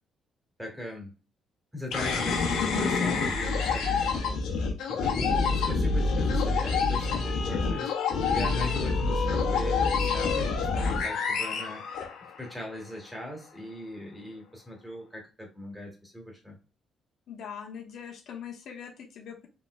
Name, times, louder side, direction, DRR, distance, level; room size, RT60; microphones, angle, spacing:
voice 1, 0.6-1.1 1.7-4.4 4.9-7.9 8.3-11.8 12.4-16.6, left 1 dB, 5° right, 0 dB, 2.1 m, -39 dB
sound 1, 1.9-12.5, left 4 dB, 85° left, 1.2 m, -27 dB
voice 2, 17.3-19.5, left 8 dB, 70° left, 1 dB, 1.2 m, -42 dB
5.6 x 3.6 x 2.2 m, 0.33 s
cardioid pair, 90°, 0 cm